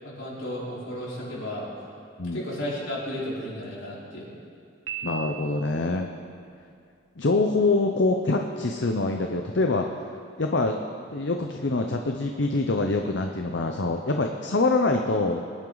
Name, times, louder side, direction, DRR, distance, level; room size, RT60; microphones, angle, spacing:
voice 1, 0.0-1.6 2.3-4.3, left 1 dB, 75° left, -6 dB, 4.3 m, -33 dB
Piano, 4.9-6.0, right 7 dB, 65° right, 1.4 m, -36 dB
voice 2, 5.0-6.1 7.2-9.9 10.4-10.8 11.1-15.4, left 3 dB, 60° left, 4 dB, 0.7 m, -25 dB
22.5 x 10.5 x 4.0 m, 2.4 s
head